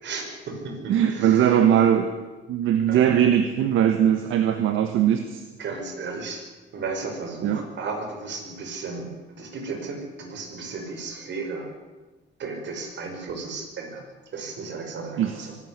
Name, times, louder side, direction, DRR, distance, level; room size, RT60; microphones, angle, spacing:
voice 1, 0.0-1.6 2.9-3.2 5.6-6.4 6.7-11.7 12.4-15.6, right 4 dB, 65° right, 3 dB, 5.7 m, -34 dB
voice 2, 0.9-2.1 2.5-5.4 7.4-7.6 15.2-15.5, right 9 dB, 85° right, 8 dB, 1.5 m, -20 dB
23.5 x 12.5 x 9.6 m, 1.2 s
cardioid pair, 90°, 20 cm